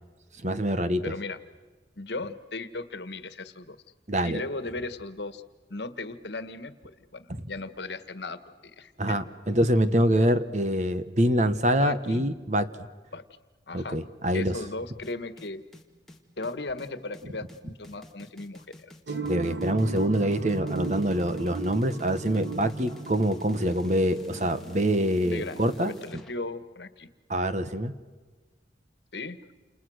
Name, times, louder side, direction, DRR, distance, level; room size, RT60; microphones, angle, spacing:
voice 1, 0.4-1.1 4.1-4.4 9.0-12.7 13.7-14.5 19.2-25.9 27.3-27.9, equal, 40° right, 11 dB, 1.3 m, -25 dB
voice 2, 1.0-1.4 2.0-3.8 4.2-5.4 5.7-6.7 7.1-8.4 8.8-9.2 11.8-12.2 13.1-13.2 13.7-14.0 14.3-15.6 16.4-18.9 25.2-27.1 29.1-29.4, left 3 dB, 75° left, 12 dB, 1.5 m, -36 dB
sound 1, 15.0-26.3, left 1 dB, ahead, 2.3 m, -48 dB
sound 2, 19.1-25.3, right 4 dB, 80° right, 1.6 m, -36 dB
29.5 x 28.5 x 6.4 m, 1.4 s
head